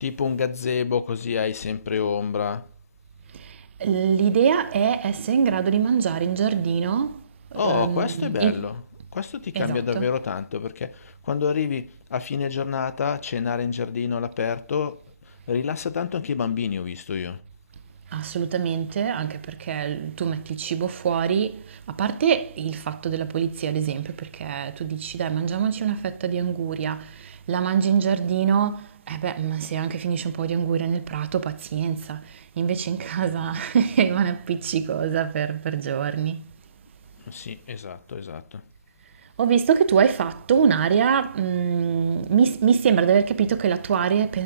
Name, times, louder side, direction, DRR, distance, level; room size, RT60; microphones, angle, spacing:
voice 1, 0.0-2.7 7.5-8.8 9.1-15.0 15.5-17.4 37.3-38.6, left 6 dB, 55° left, 0.4 m, -27 dB
voice 2, 3.3-7.2 7.5-8.7 9.5-10.1 18.1-36.4 39.4-44.4, right 7 dB, 40° right, 0.6 m, -24 dB
11.0 x 5.5 x 2.4 m
figure-of-eight pair, 150°, 10 cm